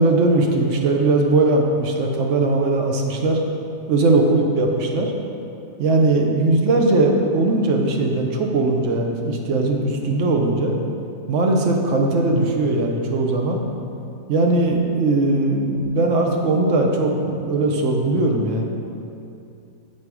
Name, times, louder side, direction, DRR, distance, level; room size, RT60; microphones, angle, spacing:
voice 1, 0.0-3.4 3.9-5.1 5.8-10.7 11.3-13.6 14.3-18.6, right 2 dB, 65° right, 1 dB, 0.9 m, -19 dB
5.4 x 4.1 x 4.6 m, 2.7 s
omnidirectional pair, 1.5 m